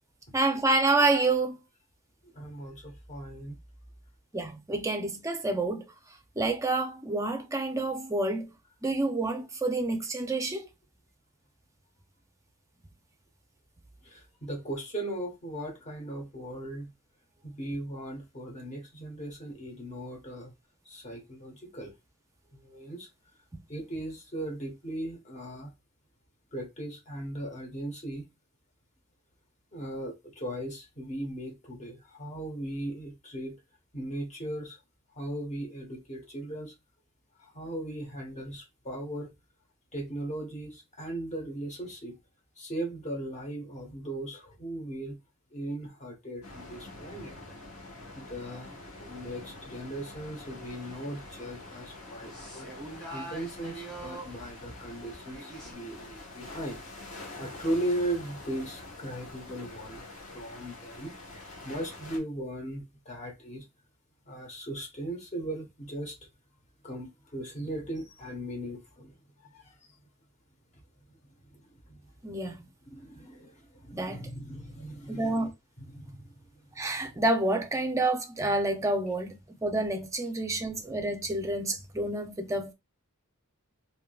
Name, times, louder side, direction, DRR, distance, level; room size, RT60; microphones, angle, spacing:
voice 1, 0.3-1.6 4.3-5.8 6.4-8.5 8.8-10.7 72.2-72.5 73.9-74.2 75.1-75.5 76.8-79.4 79.6-82.7, right 2 dB, 15° right, 0.5 m, -28 dB
voice 2, 2.3-3.6 14.0-16.9 17.4-20.5 20.8-21.9 22.5-23.1 23.7-25.7 26.5-28.3 29.7-33.6 33.9-34.8 35.1-36.7 37.4-39.3 39.9-42.2 42.6-45.2 45.5-47.4 48.1-52.7 53.1-56.8 57.4-61.1 61.6-63.6 64.3-66.2 66.8-69.1 69.4-69.9 71.1-71.2 71.5-72.1 72.4-72.6 72.8-75.5 75.8-76.6 77.0-77.2 80.6-80.7, right 1 dB, 30° left, 1.1 m, -38 dB
sound 1, 46.4-62.2, left 2 dB, 65° left, 1.3 m, -46 dB
sound 2, 50.6-55.7, right 2 dB, 5° left, 1.5 m, -45 dB
3.6 x 2.7 x 2.3 m
head